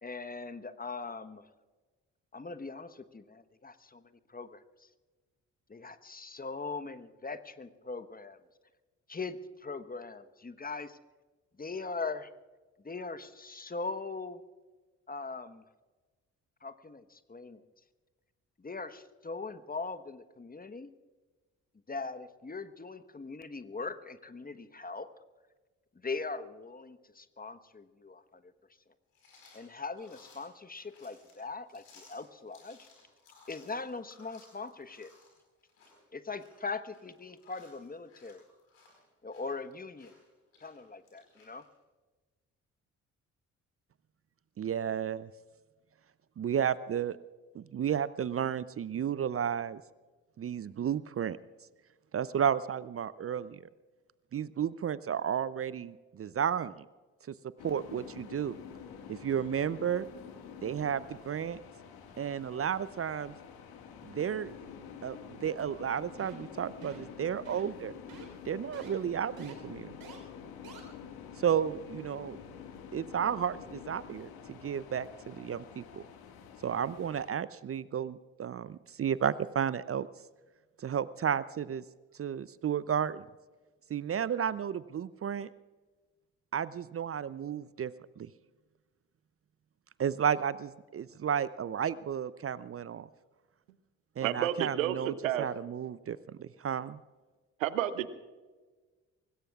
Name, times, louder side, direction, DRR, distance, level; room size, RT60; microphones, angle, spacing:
voice 1, 0.0-1.4 2.3-4.0 4.3-4.6 5.7-8.4 9.1-11.0 11.6-12.3 12.8-14.4 15.1-15.6 16.6-17.6 18.6-20.9 21.9-25.1 26.0-28.4 29.5-32.8 33.5-35.1 36.1-38.4 39.2-40.1 40.6-41.6, left 4 dB, 20° left, 11 dB, 1.2 m, -40 dB
sound 1, 29.1-41.7, left 3 dB, 90° left, 4.9 m, -61 dB
voice 2, 44.6-45.3 46.4-47.2 47.5-49.8 50.4-51.4 52.1-53.6 54.3-56.8 57.6-58.6 59.1-60.1 60.6-61.6 62.2-63.3 64.0-64.5 65.0-67.9 68.5-69.9 71.4-72.4 72.9-76.0 76.6-80.1 80.8-81.8 82.2-83.2 83.9-85.5 86.5-88.3 90.0-93.1 94.2-97.0, right 8 dB, 35° right, 18 dB, 0.6 m, -32 dB
sound 2, 57.6-77.3, left 7 dB, 70° left, 2.0 m, -48 dB
sound 3, 66.2-66.5 66.8-67.1 67.4-67.8 68.1-68.3 68.7-68.9 69.4-69.5 70.0-70.2 70.6-70.8, right 6 dB, 65° right, 4.0 m, -49 dB
voice 3, 94.2-95.5 97.6-98.1, right 11 dB, 90° right, 15 dB, 0.7 m, -30 dB
24.5 x 19.5 x 2.4 m, 1.3 s
hypercardioid pair, 40°, 39 cm